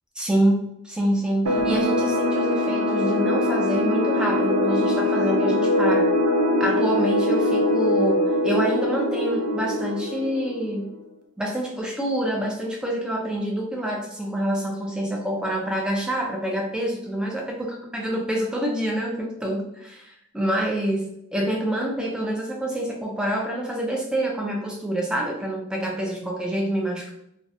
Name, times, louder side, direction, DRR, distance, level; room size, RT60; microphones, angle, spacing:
voice 1, 0.2-6.1 6.6-10.9 11.4-27.1, right 1 dB, 5° right, -1 dB, 0.3 m, -27 dB
sound 1, 1.5-10.8, left 1 dB, 85° right, 0.4 m, -22 dB
2.5 x 2.0 x 2.5 m, 0.78 s
head